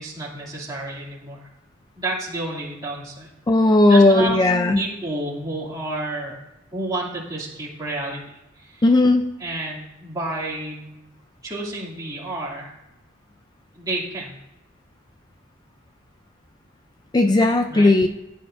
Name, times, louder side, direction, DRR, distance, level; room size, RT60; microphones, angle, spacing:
voice 1, 0.0-1.5 2.0-3.3 3.6-6.4 6.7-8.2 8.6-8.8 9.4-10.9 11.4-12.7 13.7-14.3 17.7-17.9, right 2 dB, 20° right, -5 dB, 2.5 m, -30 dB
voice 2, 3.5-4.8 8.8-9.3 17.1-18.1, left 2 dB, 20° left, 6 dB, 0.4 m, -16 dB
15.5 x 8.6 x 2.6 m, 0.96 s
head